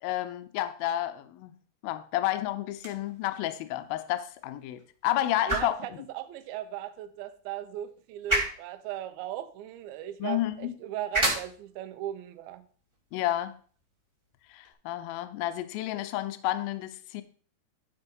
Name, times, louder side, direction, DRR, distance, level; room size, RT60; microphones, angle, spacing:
voice 1, 0.0-1.6 1.8-5.8 10.2-10.7 13.1-13.5 14.5-17.2, left 14 dB, 75° left, 10 dB, 2.3 m, -31 dB
sound 1, 2.7-14.7, right 1 dB, 10° right, 1.3 m, -36 dB
voice 2, 5.5-12.6, right 12 dB, 75° right, 8 dB, 2.5 m, -38 dB
11.5 x 4.5 x 5.3 m, 0.43 s
omnidirectional pair, 4.7 m